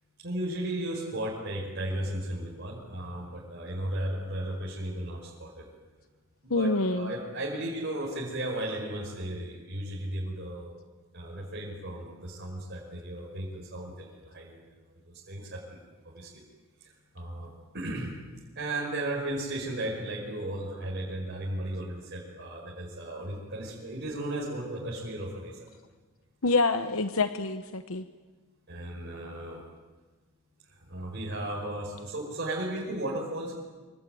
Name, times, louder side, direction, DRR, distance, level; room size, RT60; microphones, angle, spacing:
voice 1, 0.2-5.7 6.4-10.7 11.1-14.6 14.9-16.4 16.8-18.1 18.6-25.6 28.7-29.6 30.7-33.5, right 1 dB, 50° right, -3 dB, 5.3 m, -35 dB
voice 2, 6.5-7.1 26.4-28.1, left 3 dB, 70° left, 10 dB, 1.0 m, -26 dB
25.5 x 24.5 x 9.2 m, 1.3 s
head